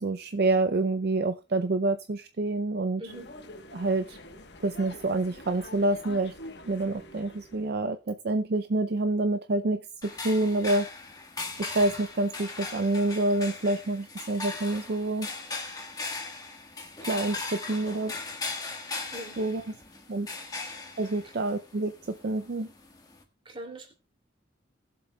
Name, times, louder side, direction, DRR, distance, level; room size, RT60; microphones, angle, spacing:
voice 1, 0.0-3.0 3.7-4.2 4.6-6.3 6.6-10.9 11.6-15.3 17.1-18.1 19.4-19.6 20.1-20.3 21.0-22.7, right 2 dB, 55° right, 0.5 m, -27 dB
sound 1, 3.1-7.8, left 1 dB, 60° left, 1.1 m, -46 dB
sound 2, 10.0-23.2, left 3 dB, 20° left, 1.4 m, -39 dB
voice 2, 23.4-23.9, right 1 dB, 25° right, 2.7 m, -41 dB
20.0 x 7.6 x 2.3 m
head